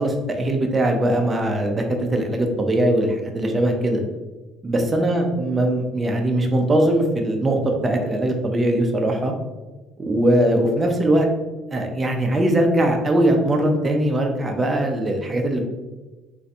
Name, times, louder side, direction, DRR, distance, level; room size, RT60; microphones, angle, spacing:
voice 1, 0.0-4.0 4.6-9.3 10.0-11.3 11.7-15.6, right 1 dB, 20° right, 3 dB, 0.4 m, -21 dB
3.2 x 2.5 x 2.7 m, 1.2 s
cardioid pair, 130°, 0 cm